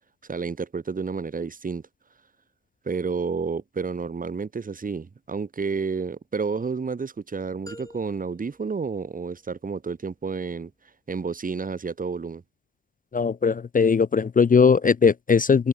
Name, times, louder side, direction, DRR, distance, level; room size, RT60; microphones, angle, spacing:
voice 1, 0.3-1.8 2.8-10.7 11.1-12.4, right 5 dB, 25° right, 0.8 m, -30 dB
sound 1, 7.7-9.7, left 1 dB, 10° left, 6.2 m, -48 dB
voice 2, 13.1-15.7, left 5 dB, 25° left, 0.4 m, -19 dB
supercardioid pair, 45°, 31 cm